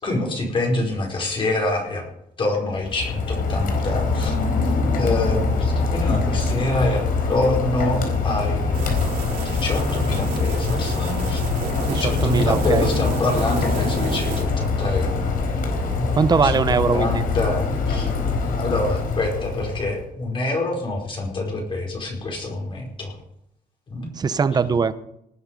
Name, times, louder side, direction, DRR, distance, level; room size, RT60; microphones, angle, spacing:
voice 1, 0.0-2.0 2.4-4.4 4.9-7.0 7.3-8.9 9.4-11.4 11.8-15.4 15.9-16.1 16.4-18.1 18.6-23.1 23.9-24.1, left 2 dB, 35° left, 0 dB, 4.8 m, -26 dB
Rain, 2.7-20.0, left 4 dB, 70° left, 4.3 m, -24 dB
sound 1, 8.7-14.4, right 5 dB, 80° right, 5.9 m, -33 dB
voice 2, 11.9-12.9 16.1-17.1 24.2-24.9, right 5 dB, 25° right, 13 dB, 0.8 m, -20 dB
19.0 x 11.0 x 5.3 m, 0.79 s
cardioid pair, 175°, 15 cm